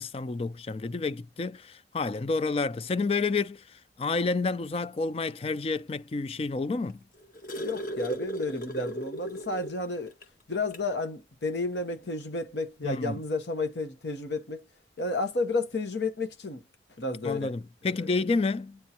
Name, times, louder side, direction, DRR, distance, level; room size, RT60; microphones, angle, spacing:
voice 1, 0.0-7.0 12.8-13.2 17.2-18.8, left 3 dB, 30° left, 0.3 m, -30 dB
sound 1, 6.9-9.8 10.2-10.3 10.7-10.9 12.0-12.1, equal, 50° left, 1.6 m, -36 dB
voice 2, 7.6-10.1 10.5-14.6 15.0-16.6 17.0-17.5 18.0-18.1, left 2 dB, 80° left, 1.0 m, -31 dB
9.3 x 3.5 x 2.8 m
head